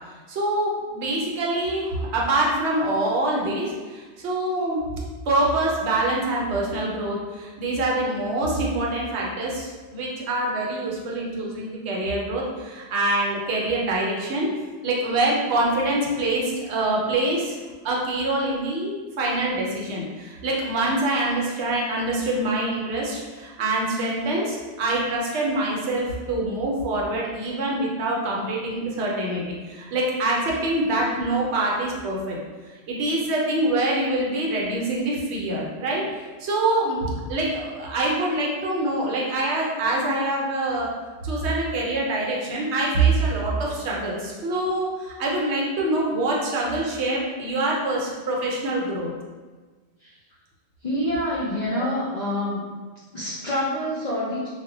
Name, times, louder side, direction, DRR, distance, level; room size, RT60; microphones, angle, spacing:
voice 1, 0.3-4.8 5.3-14.5 14.8-17.6 17.8-32.4 32.9-40.9 41.2-49.1 51.7-51.9, right 2 dB, 70° right, -3 dB, 0.8 m, -25 dB
voice 2, 50.8-52.7 53.1-54.5, left 1 dB, 60° left, -8 dB, 0.4 m, -26 dB
2.1 x 2.0 x 3.6 m, 1.4 s
omnidirectional pair, 1.2 m